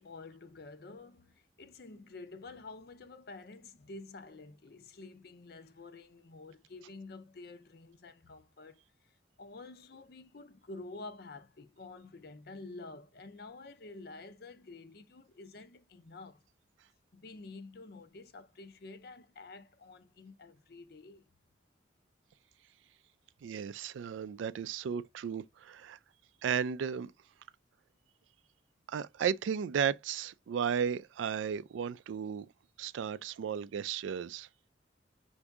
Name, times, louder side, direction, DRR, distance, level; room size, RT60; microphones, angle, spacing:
voice 1, 0.0-8.8 9.4-16.4 17.1-21.2, left 3 dB, 50° left, 0.5 m, -49 dB
voice 2, 23.4-26.0 26.4-27.1 28.9-32.5 32.8-34.5, right 7 dB, 80° right, 0.3 m, -34 dB
4.7 x 2.6 x 3.4 m
head